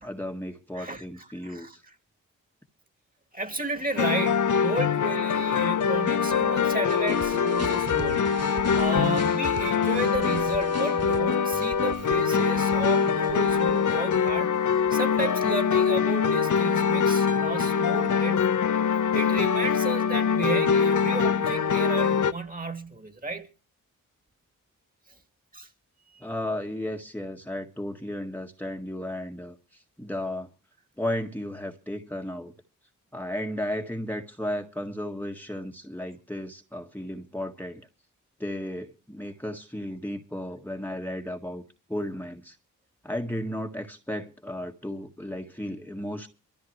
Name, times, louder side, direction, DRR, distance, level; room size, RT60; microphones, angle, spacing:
voice 1, 0.0-1.8 26.2-30.5 31.0-32.5 33.1-37.9 38.4-41.6 41.9-42.6 43.0-46.3, left 1 dB, 5° left, 1.7 m, -34 dB
voice 2, 1.4-1.8 3.3-8.3 8.7-14.6 14.9-23.5 25.5-25.7 26.1-26.2, right 2 dB, 25° right, 2.8 m, -33 dB
sound 1, 4.0-22.3, left 7 dB, 60° left, 1.0 m, -24 dB
sound 2, 6.9-15.0, right 6 dB, 45° right, 1.0 m, -39 dB
23.0 x 14.0 x 3.2 m
supercardioid pair, 45°, 35 cm